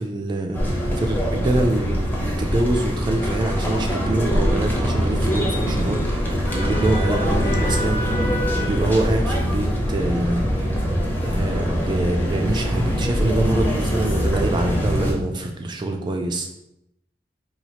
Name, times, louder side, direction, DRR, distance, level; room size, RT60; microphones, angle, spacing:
voice 1, 0.0-10.8 11.2-16.5, right 2 dB, 25° right, 3 dB, 0.3 m, -25 dB
sound 1, 0.5-15.1, equal, 10° left, 0.6 m, -23 dB
4.2 x 2.3 x 2.8 m, 0.84 s
head